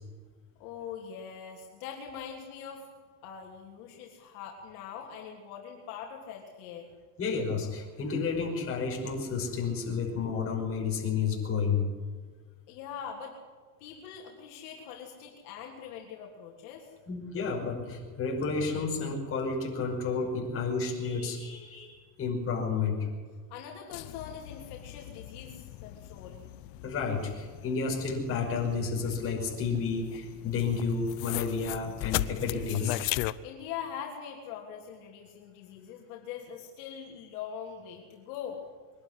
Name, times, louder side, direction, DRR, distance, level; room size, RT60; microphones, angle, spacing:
voice 1, 0.6-2.9 3.2-6.9 12.7-13.4 13.8-16.9 23.5-26.4 33.4-38.6, left 8 dB, 60° left, 0 dB, 3.3 m, -42 dB
voice 2, 7.2-11.9 17.1-23.0 26.8-33.0, left 5 dB, 25° left, 0 dB, 5.7 m, -31 dB
sound 1, 23.9-33.3, left 17 dB, 45° left, 0.7 m, -38 dB
23.0 x 11.5 x 9.9 m, 1.5 s
supercardioid pair, 145°, 49 cm